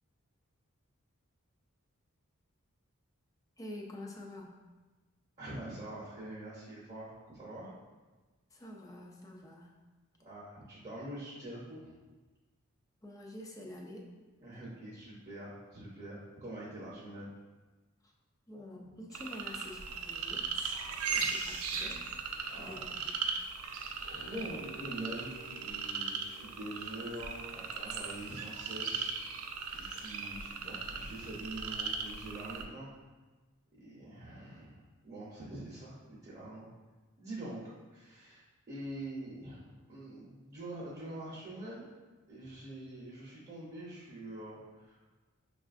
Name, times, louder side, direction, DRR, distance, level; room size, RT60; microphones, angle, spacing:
voice 1, 3.6-4.5 8.5-9.7 13.0-14.1 18.0-18.1 18.5-20.5 21.1-22.0 22.6-23.2, left 1 dB, 15° left, 0 dB, 0.4 m, -47 dB
voice 2, 5.4-7.7 10.3-12.0 14.4-17.3 20.9-21.3 22.5-22.8 23.6-29.1 29.7-32.9 33.8-36.7 37.2-37.6 37.9-41.9 42.3-45.1, right 1 dB, 30° right, -8 dB, 0.7 m, -45 dB
sound 1, 19.1-32.6, right 5 dB, 70° right, 0.4 m, -38 dB
sound 2, 24.1-28.7, equal, 75° left, 0.6 m, -54 dB
5.6 x 2.4 x 2.4 m, 1.3 s
head